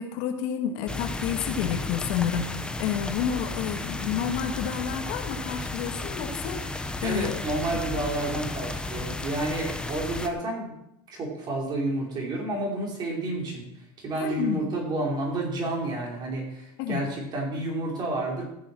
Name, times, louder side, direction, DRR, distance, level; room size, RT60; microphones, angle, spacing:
voice 1, 0.0-6.6 7.0-7.4 7.9-8.0 14.1-14.6 16.8-17.0, left 8 dB, 70° left, 5 dB, 1.8 m, -30 dB
sound 1, 0.9-10.3, left 2 dB, 10° left, 1.1 m, -33 dB
voice 2, 7.0-10.8 11.1-13.6 14.0-18.4, right 2 dB, 35° right, -1 dB, 4.9 m, -30 dB
14.5 x 7.2 x 6.3 m, 0.82 s
supercardioid pair, 115°, 12 cm